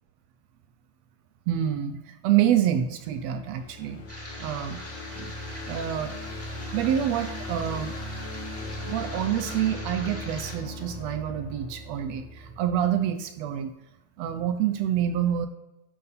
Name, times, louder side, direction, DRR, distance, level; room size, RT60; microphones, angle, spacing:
voice 1, 1.5-4.0 4.4-4.8 5.1-5.3 5.7-6.1 6.7-7.9 8.8-13.7 14.2-15.5, right 10 dB, 75° right, 8 dB, 1.7 m, -27 dB
sound 1, 2.8-13.0, left 1 dB, 55° left, 1.4 m, -38 dB
sound 2, 4.1-10.5, equal, 10° left, 1.0 m, -42 dB
11.0 x 6.5 x 4.0 m, 0.95 s
omnidirectional pair, 3.4 m